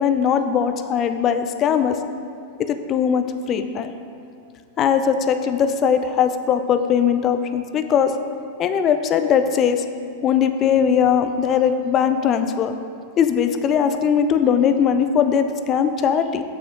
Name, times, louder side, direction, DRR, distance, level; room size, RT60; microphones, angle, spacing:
voice 1, 0.0-2.0 2.7-3.9 4.8-8.1 8.6-9.8 10.2-12.7 13.2-16.4, left 7 dB, 30° left, 9 dB, 0.4 m, -20 dB
6.2 x 6.0 x 3.5 m, 2.3 s
figure-of-eight pair, 95°, 0 cm